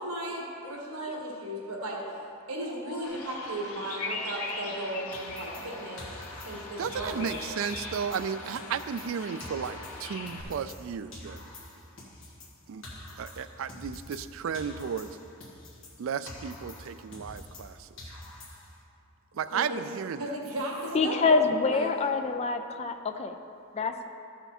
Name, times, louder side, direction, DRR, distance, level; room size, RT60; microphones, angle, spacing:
voice 1, 0.0-2.0 2.5-6.1 6.4-7.4 19.4-19.8 20.2-21.9, right 1 dB, 85° right, -2 dB, 1.6 m, -36 dB
Bird vocalization bird call bird song, 3.0-10.4, left 3 dB, 90° left, 1.4 m, -40 dB
sound 1, 5.1-7.4 7.7-10.9 11.1-14.3 14.5-17.7 18.0-18.8, left 1 dB, 60° left, 1.6 m, -46 dB
voice 2, 6.8-11.4 12.7-12.8 13.2-15.1 16.0-17.8 19.4-20.2, right 7 dB, 65° right, 13 dB, 0.3 m, -34 dB
voice 3, 20.9-23.4 23.7-24.1, left 4 dB, 30° left, 6 dB, 0.4 m, -26 dB
13.5 x 5.7 x 4.3 m, 2.6 s
head